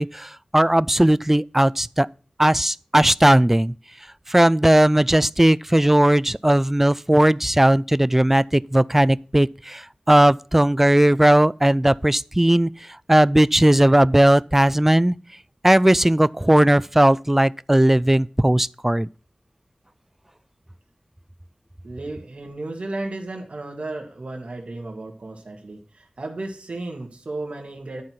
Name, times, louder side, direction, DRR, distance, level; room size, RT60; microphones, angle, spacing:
voice 1, 0.0-2.1 2.4-3.7 4.3-12.7 13.1-15.2 15.6-19.1, right 1 dB, 15° right, 0.3 m, -17 dB
voice 2, 21.8-28.0, right 2 dB, 75° right, 1.8 m, -34 dB
10.5 x 4.6 x 5.7 m
wide cardioid pair, 50°, 2 cm